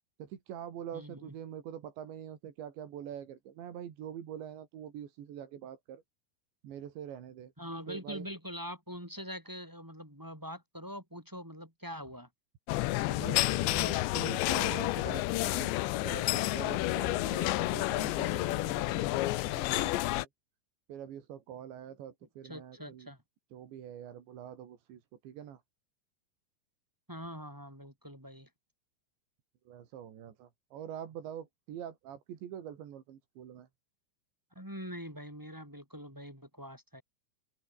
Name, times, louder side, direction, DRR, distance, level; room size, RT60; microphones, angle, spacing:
voice 1, 0.2-6.0 6.6-7.5 7.9-8.3 13.2-15.7 16.0-20.3 20.9-23.1 23.5-25.6 29.7-33.7, right 9 dB, 90° right, 5.0 m, -45 dB
voice 2, 0.9-1.3 7.6-12.3 22.4-23.2 27.1-28.5 34.5-37.0, equal, 5° right, 4.5 m, -44 dB
sound 1, 12.7-20.3, left 18 dB, 85° left, 3.2 m, -30 dB
open air
omnidirectional pair, 5.0 m